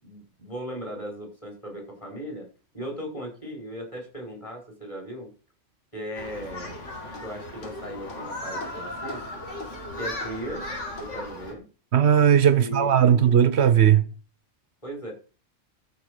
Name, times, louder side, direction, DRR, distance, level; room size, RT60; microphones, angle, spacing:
voice 1, 0.0-2.5 2.7-5.3 5.9-6.7 7.2-9.2 10.0-10.7 11.0-11.6 12.5-13.2 14.8-15.1, equal, 25° left, 5.7 m, -37 dB
Human group actions, 6.1-11.5, left 1 dB, 75° left, 2.7 m, -36 dB
voice 2, 11.9-14.0, right 9 dB, 65° right, 1.1 m, -18 dB
13.5 x 5.1 x 6.6 m
omnidirectional pair, 1.3 m